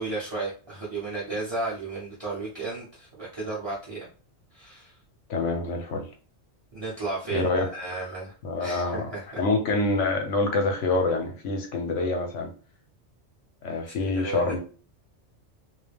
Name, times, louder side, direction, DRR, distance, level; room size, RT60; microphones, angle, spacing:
voice 1, 0.0-4.1 4.5-5.0 6.7-9.4 13.9-14.6, right 3 dB, 25° right, -7 dB, 0.7 m, -34 dB
voice 2, 5.3-6.1 7.3-7.7 8.4-9.1 9.4-12.5 13.6-14.6, left 2 dB, 80° left, 4 dB, 1.0 m, -26 dB
2.4 x 2.1 x 3.3 m, 0.39 s
omnidirectional pair, 1.3 m